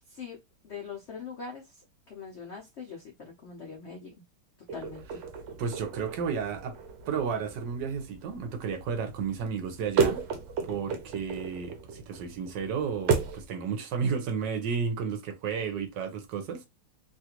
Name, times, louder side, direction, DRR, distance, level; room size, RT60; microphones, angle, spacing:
voice 1, 0.1-0.4 0.6-4.1 4.7-5.2, left 5 dB, 70° left, 0.6 m, -42 dB
sound 1, 4.7-13.5, right 5 dB, 90° right, 1.4 m, -33 dB
voice 2, 5.6-6.8 7.1-10.2 10.6-16.7, right 6 dB, 70° right, 1.3 m, -32 dB
3.2 x 2.4 x 2.8 m
omnidirectional pair, 2.0 m